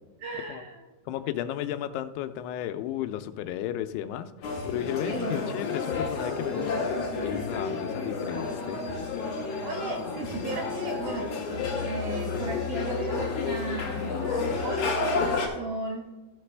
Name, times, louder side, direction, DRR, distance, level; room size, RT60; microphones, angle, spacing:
voice 1, 0.2-0.9 5.0-5.5 9.6-11.3 11.8-16.1, right 3 dB, 80° right, 1 dB, 1.8 m, -36 dB
voice 2, 1.1-4.3 4.7-8.8, left 11 dB, 85° left, 9 dB, 2.6 m, -34 dB
sound 1, 4.4-15.5, left 4 dB, 60° left, 1.8 m, -30 dB
15.5 x 5.9 x 3.3 m, 1.1 s
omnidirectional pair, 4.7 m